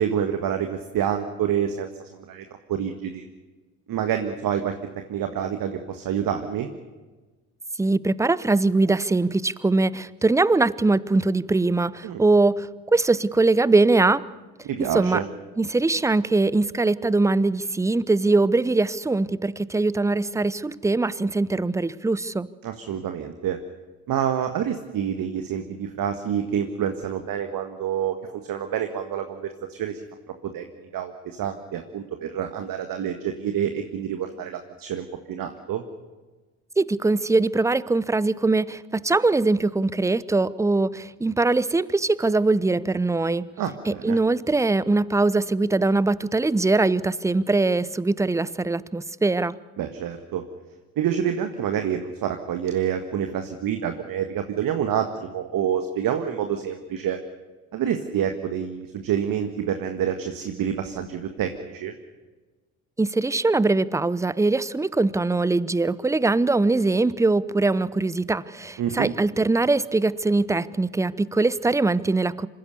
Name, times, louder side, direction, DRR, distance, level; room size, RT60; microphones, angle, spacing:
voice 1, 0.0-3.2 3.9-4.7 5.1-6.7 12.0-12.2 14.6-15.3 22.6-23.6 24.1-28.1 28.4-30.0 30.5-30.6 30.9-35.8 43.6-44.2 49.8-50.4 51.0-57.2 57.7-61.9 68.8-69.1, right 9 dB, 50° right, 7 dB, 1.7 m, -27 dB
voice 2, 7.8-14.3 14.8-15.2 15.6-22.5 36.8-43.5 43.9-49.6 63.0-72.5, right 3 dB, 5° right, 20 dB, 0.7 m, -22 dB
27.0 x 16.0 x 6.9 m, 1.3 s
hypercardioid pair, 55°, 44 cm